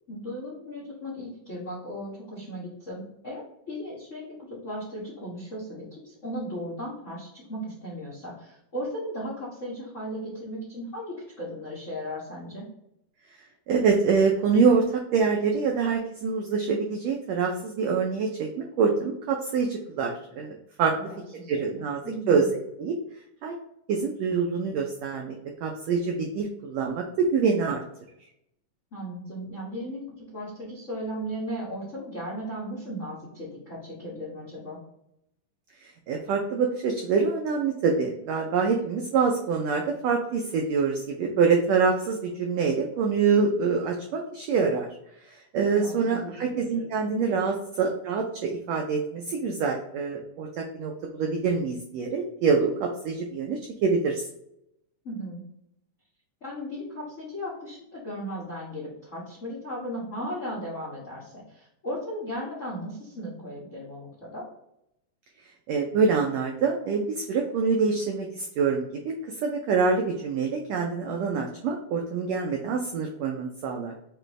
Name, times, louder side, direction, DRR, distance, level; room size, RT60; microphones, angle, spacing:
voice 1, 0.1-4.2 4.5-12.7 20.9-21.8 22.0-22.5 28.9-34.8 45.7-46.9 47.2-47.5 55.0-55.4 56.4-64.5, equal, 80° left, -4 dB, 0.6 m, -36 dB
voice 2, 13.7-20.9 21.5-22.0 22.3-22.5 22.8-22.9 23.4-23.5 23.9-25.4 25.6-27.8 36.1-44.9 45.5-54.3 65.7-73.9, right 5 dB, 85° right, 2 dB, 1.5 m, -25 dB
6.6 x 2.6 x 3.1 m, 0.79 s
omnidirectional pair, 3.6 m